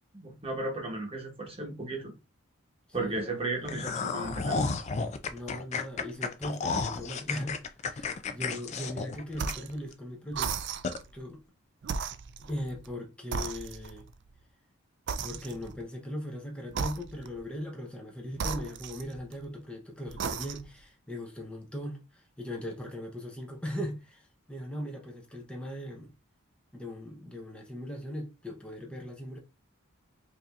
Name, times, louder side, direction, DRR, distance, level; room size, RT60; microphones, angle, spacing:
voice 1, 0.1-2.1 2.9-4.6, right 2 dB, 25° right, 1.1 m, -35 dB
voice 2, 3.0-3.5 5.3-10.5 11.1-11.4 12.4-14.1 15.2-26.1 26.7-29.4, left 1 dB, 5° left, 0.7 m, -39 dB
sound 1, 3.6-9.9 10.3-10.4 10.8-11.0, left 4 dB, 30° left, 0.3 m, -32 dB
sound 2, 9.3-9.8 10.3-11.1 11.8-12.9 13.3-14.1 15.1-15.8 16.7-17.4 18.3-19.5 20.1-20.8, right 6 dB, 55° right, 0.3 m, -36 dB
4.8 x 2.8 x 2.4 m
head